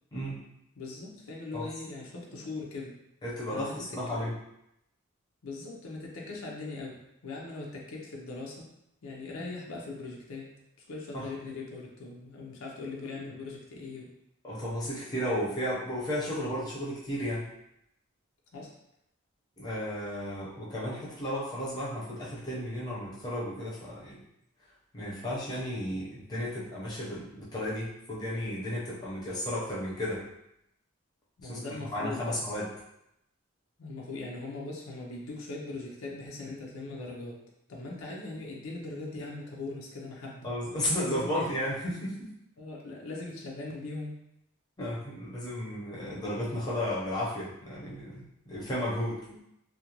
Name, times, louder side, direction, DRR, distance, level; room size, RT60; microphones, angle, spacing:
voice 1, 0.8-3.0 3.5-4.2 5.4-8.7 9.0-10.5 10.9-14.1 18.5-18.7 31.4-32.4 33.8-37.4 37.7-40.5 41.1-41.5 42.6-44.2 49.3-49.4, left 3 dB, 75° left, -2 dB, 0.5 m, -40 dB
voice 2, 3.2-4.3 11.1-11.3 14.4-17.4 19.6-24.2 24.9-30.2 31.4-31.6 31.9-32.7 40.4-42.3 44.8-49.2, equal, 20° left, -7 dB, 0.7 m, -33 dB
2.4 x 2.1 x 2.9 m, 0.81 s
head